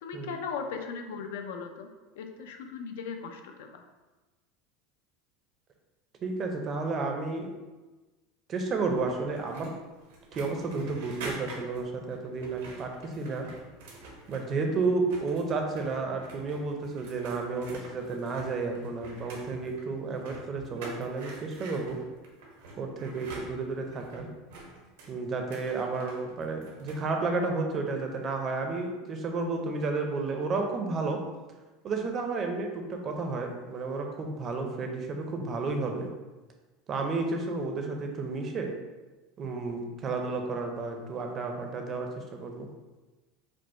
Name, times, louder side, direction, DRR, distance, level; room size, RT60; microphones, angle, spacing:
voice 1, 0.0-1.9 2.2-3.8, left 5 dB, 90° left, 4 dB, 0.5 m, -38 dB
voice 2, 6.2-7.5 8.5-9.7 10.4-13.5 14.3-22.0 22.8-24.3 25.1-31.2 31.8-36.1 36.9-38.7 39.4-42.7, right 3 dB, 25° right, 3 dB, 0.5 m, -32 dB
sound 1, 8.9-14.7 15.0-27.1, right 2 dB, 85° right, 1.0 m, -47 dB
5.1 x 2.0 x 4.2 m, 1.2 s
supercardioid pair, 165°, 0 cm